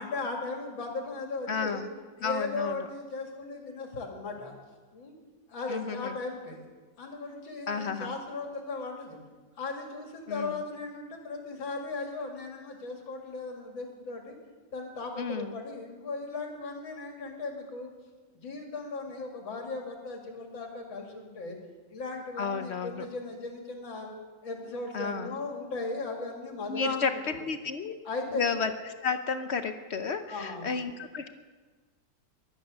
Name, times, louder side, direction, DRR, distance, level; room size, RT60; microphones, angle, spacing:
voice 1, 0.0-1.8 2.2-4.5 4.9-5.2 5.5-6.6 7.0-9.2 9.6-14.4 14.7-17.9 18.3-21.6 21.9-24.1 24.4-27.4 28.0-28.4 30.3-30.7, left 3 dB, 85° left, 2 dB, 3.2 m, -37 dB
voice 2, 1.5-1.9 2.2-2.7 5.7-6.2 7.7-8.1 10.3-10.6 15.2-15.6 22.4-23.0 24.9-25.3 26.7-27.9 28.3-28.7 29.0-31.3, left 5 dB, 60° left, 9 dB, 0.7 m, -32 dB
22.5 x 9.6 x 6.3 m, 1.4 s
omnidirectional pair, 2.1 m